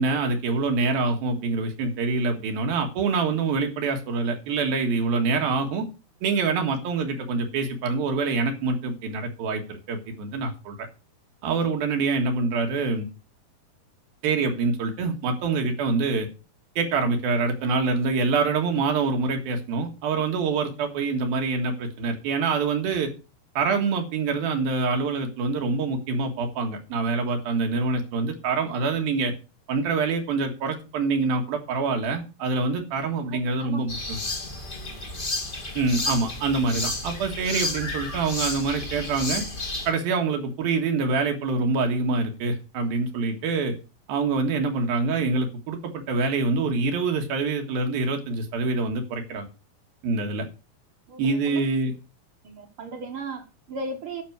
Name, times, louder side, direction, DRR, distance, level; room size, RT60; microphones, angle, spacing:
voice 1, 0.0-5.8 6.2-10.9 11.4-13.1 14.2-16.3 16.8-23.1 23.5-29.3 29.7-34.2 35.7-39.4 39.9-43.7 44.1-49.5 50.0-50.4 51.2-51.9, right 4 dB, 80° right, 3 dB, 3.5 m, -25 dB
voice 2, 33.3-33.8 34.8-35.0 51.1-51.6 52.4-54.2, right 3 dB, 50° right, 6 dB, 1.7 m, -36 dB
sound 1, 33.9-39.9, left 2 dB, 25° left, 1.0 m, -31 dB
11.5 x 6.1 x 6.2 m, 0.31 s
omnidirectional pair, 4.3 m